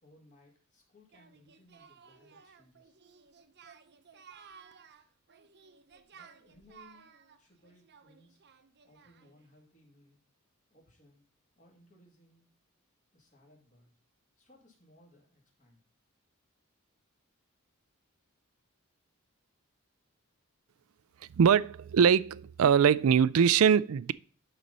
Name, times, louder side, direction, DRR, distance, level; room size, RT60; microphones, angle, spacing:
voice 1, 0.0-2.9 6.1-7.1 7.4-8.4 8.8-10.2 10.7-11.2 11.6-12.5 13.1-13.9 14.4-15.8, left 1 dB, 35° left, 2.6 m, -62 dB
Singing, 1.1-9.5, right 6 dB, 55° right, 0.8 m, -57 dB
voice 2, 21.3-24.1, right 7 dB, 75° right, 0.4 m, -22 dB
11.5 x 4.3 x 5.4 m
head